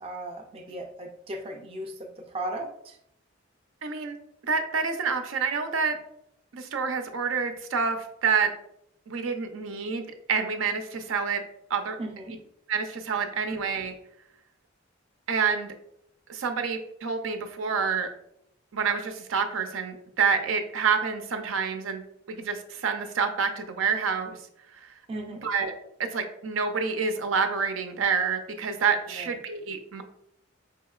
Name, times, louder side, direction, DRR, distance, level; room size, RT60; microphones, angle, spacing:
voice 1, 0.0-3.0 12.0-12.4 25.1-25.4 29.1-29.4, right 1 dB, 30° right, 3 dB, 0.4 m, -37 dB
voice 2, 3.8-4.1 4.5-6.0 6.5-8.5 9.1-11.4 11.7-12.0 12.7-13.9 15.3-15.7 16.3-18.1 18.7-24.4 24.7-24.9 25.4-25.7 26.0-30.0, right 5 dB, 80° right, 6 dB, 0.5 m, -28 dB
4.9 x 2.8 x 2.3 m, 0.74 s
head